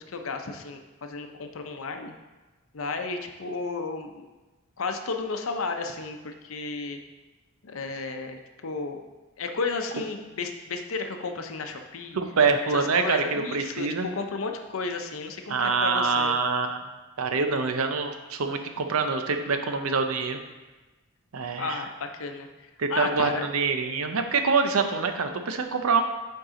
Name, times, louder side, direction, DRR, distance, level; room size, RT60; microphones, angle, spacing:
voice 1, 0.1-2.1 2.7-4.3 4.8-7.0 7.6-9.0 9.4-12.2 12.7-16.3 21.6-23.5, left 4 dB, 70° left, 5 dB, 0.7 m, -33 dB
voice 2, 12.1-14.1 15.5-16.8 17.2-20.4 21.3-21.8 22.8-26.0, right 4 dB, 90° right, 7 dB, 0.7 m, -25 dB
7.9 x 4.6 x 3.8 m, 1.2 s
head